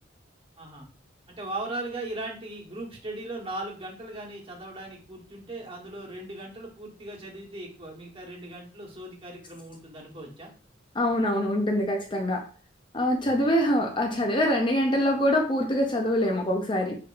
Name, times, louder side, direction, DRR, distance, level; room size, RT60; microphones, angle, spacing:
voice 1, 0.6-0.9 1.3-10.5 13.3-13.4, right 2 dB, 30° right, -2 dB, 1.3 m, -38 dB
voice 2, 10.9-12.4 12.9-17.0, equal, 25° left, 2 dB, 0.5 m, -24 dB
5.8 x 2.9 x 2.5 m, 0.39 s
head